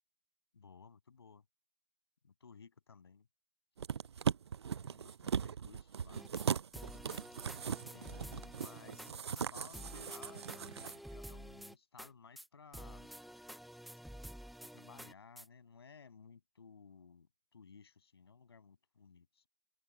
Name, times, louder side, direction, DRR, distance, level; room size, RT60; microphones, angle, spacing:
voice 1, 0.5-1.4 2.2-3.3 4.7-6.2 7.9-13.1 14.7-19.5, left 5 dB, 65° left, 7.5 m, -58 dB
sound 1, 3.8-10.9 11.3-11.4, right 7 dB, 75° right, 0.4 m, -39 dB
sound 2, 6.1-6.5 6.7-9.1 9.4-9.5 9.7-12.1 12.4-12.5 12.7-15.5, equal, ahead, 0.6 m, -50 dB
open air
hypercardioid pair, 180°, 14 cm